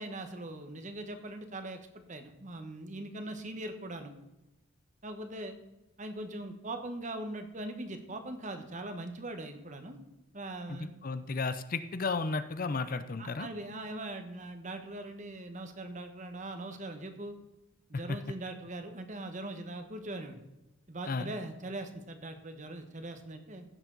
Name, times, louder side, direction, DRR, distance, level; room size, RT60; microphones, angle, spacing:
voice 1, 0.0-4.1 5.0-5.6 6.0-10.0 10.3-11.0 13.2-17.3 17.9-20.4 20.9-23.6, right 1 dB, 35° right, 7 dB, 1.2 m, -41 dB
voice 2, 10.7-13.5 18.1-18.2 21.1-21.3, left 4 dB, 40° left, 12 dB, 0.5 m, -33 dB
15.5 x 7.1 x 3.9 m, 0.94 s
head